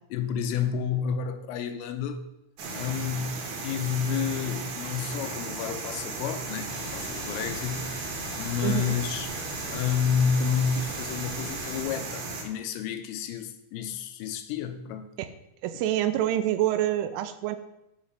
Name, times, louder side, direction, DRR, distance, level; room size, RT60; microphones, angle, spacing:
voice 1, 0.1-2.3 2.7-8.0 8.4-9.3 9.7-15.1, left 7 dB, 90° left, 8 dB, 3.4 m, -30 dB
sound 1, 2.6-12.4, right 3 dB, 65° right, 2.4 m, -35 dB
sound 2, 6.7-11.8, left 2 dB, 65° left, 2.1 m, -42 dB
voice 2, 8.6-9.0 15.2-15.3 15.6-17.6, right 13 dB, 85° right, 10 dB, 3.0 m, -26 dB
8.7 x 7.2 x 5.3 m, 0.88 s
omnidirectional pair, 5.7 m